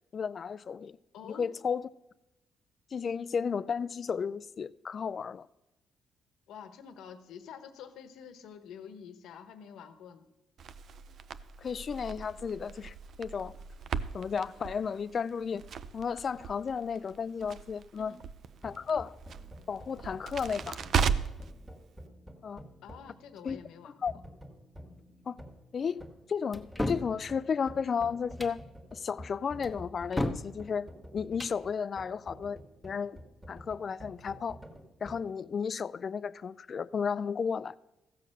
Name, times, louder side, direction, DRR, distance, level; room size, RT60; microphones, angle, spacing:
voice 1, 0.1-1.0 1.2-1.9 2.9-5.5 11.6-13.5 14.1-15.6 15.9-18.1 18.6-19.2 19.7-20.8 22.4-22.6 23.4-23.6 24.0-24.1 25.3-25.4 25.7-28.6 28.9-30.9 31.1-33.2 33.5-34.6 35.0-37.8, left 6 dB, 45° left, 0.4 m, -33 dB
voice 2, 1.1-1.5 6.5-10.2 18.0-18.2 22.8-24.0 24.9-25.0, left 7 dB, 80° left, 1.1 m, -48 dB
Crackle, 10.6-21.5, right 6 dB, 60° right, 0.5 m, -37 dB
sound 1, 18.4-35.3, equal, 15° right, 1.7 m, -50 dB
sound 2, 26.5-27.1 28.2-28.6 29.6-30.5 31.2-31.6, left 1 dB, 10° left, 1.0 m, -33 dB
15.0 x 6.5 x 6.5 m
cardioid pair, 90°, 0 cm